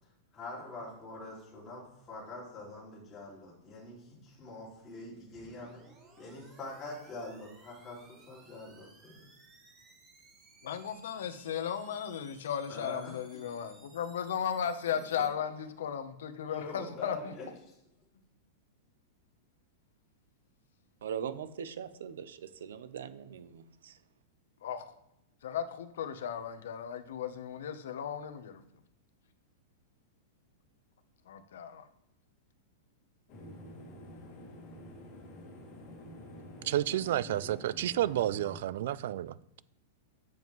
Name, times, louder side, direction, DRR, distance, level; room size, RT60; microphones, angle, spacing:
voice 1, 0.3-5.8 6.2-9.3 12.7-13.1 16.3-17.5, left 2 dB, 15° left, 2.4 m, -44 dB
sound 1, 5.3-15.3, right 3 dB, 20° right, 1.2 m, -60 dB
voice 2, 10.6-17.3 24.6-24.9 25.4-28.6 31.3-31.9, left 8 dB, 75° left, 0.9 m, -36 dB
voice 3, 21.0-24.0, right 8 dB, 85° right, 0.7 m, -41 dB
sound 2, 33.3-38.6, left 1 dB, 35° left, 2.0 m, -48 dB
voice 4, 36.6-39.6, right 12 dB, 55° right, 0.3 m, -31 dB
7.6 x 7.3 x 3.1 m
supercardioid pair, 175°, 0 cm